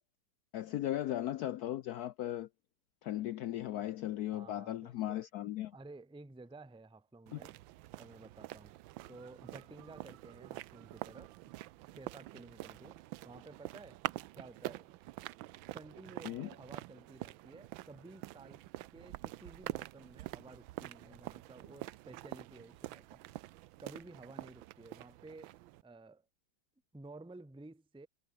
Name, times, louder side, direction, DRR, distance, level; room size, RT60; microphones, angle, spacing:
voice 1, 0.5-2.5 3.0-5.7 7.3-7.4 16.2-16.5, left 13 dB, 70° left, 0.9 m, -37 dB
voice 2, 4.3-5.2 5.7-7.5 7.9-8.7 9.1-11.5 12.0-13.0 13.2-14.0 14.3-14.9 15.7-18.7 18.9-23.2 23.8-26.3 26.9-28.1, right 2 dB, 5° right, 0.8 m, -53 dB
sound 1, 7.3-25.8, right 17 dB, 80° right, 1.4 m, -46 dB
omnidirectional pair, 2.1 m